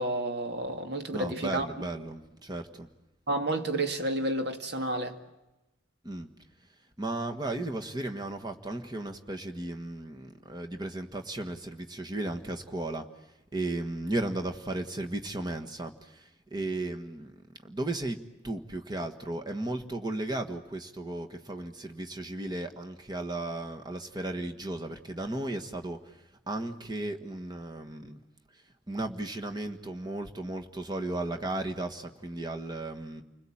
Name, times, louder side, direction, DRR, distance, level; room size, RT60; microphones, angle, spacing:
voice 1, 0.0-1.7 3.3-5.2, right 1 dB, 55° right, 2.1 m, -30 dB
voice 2, 1.1-2.9 6.0-6.3 7.0-13.1 13.5-17.3 17.6-18.2 18.4-26.1 26.5-28.2 28.9-33.2, right 2 dB, 20° right, 1.5 m, -35 dB
30.0 x 21.0 x 8.8 m
head